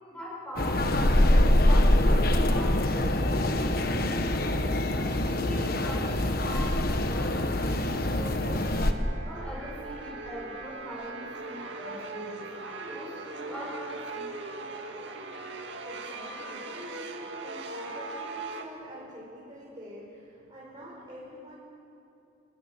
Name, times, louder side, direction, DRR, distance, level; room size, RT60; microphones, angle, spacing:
voice 1, 0.1-4.3 5.0-8.7 9.2-14.4, equal, 5° left, -5 dB, 7.0 m, -42 dB
sound 1, 0.6-8.9, left 1 dB, 45° left, 1.5 m, -24 dB
sound 2, 7.5-18.6, right 3 dB, 60° right, 2.2 m, -40 dB
voice 2, 15.8-21.6, equal, 20° right, -7 dB, 5.4 m, -45 dB
28.5 x 22.5 x 7.5 m, 2.8 s
head